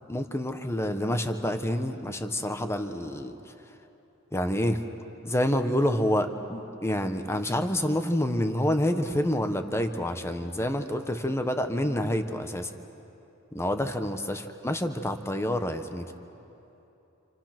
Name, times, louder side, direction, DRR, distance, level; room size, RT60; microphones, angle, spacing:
voice 1, 0.1-3.5 4.3-4.8 5.2-12.7 13.5-16.1, left 1 dB, 15° left, 7 dB, 1.2 m, -28 dB
28.5 x 28.0 x 6.1 m, 2.9 s
head